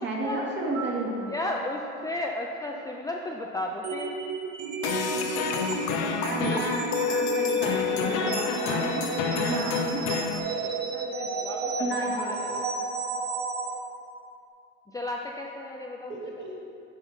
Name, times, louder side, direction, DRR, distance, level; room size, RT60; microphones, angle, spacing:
voice 1, 0.0-1.3 6.2-10.1 11.8-12.4 16.2-16.6, right 2 dB, 40° right, -3 dB, 1.8 m, -32 dB
Piano, 0.7-3.7 11.8-12.0, right 6 dB, 15° right, 1.5 m, -45 dB
voice 2, 1.3-4.2 9.6-12.6 14.9-16.2, left 1 dB, 10° left, 0 dB, 0.4 m, -35 dB
sound 1, 3.8-13.7, right 4 dB, 65° right, 1.0 m, -32 dB
sound 2, 4.8-10.4, left 6 dB, 70° left, 0.7 m, -28 dB
9.2 x 3.6 x 5.5 m, 2.6 s
supercardioid pair, 110°, 29 cm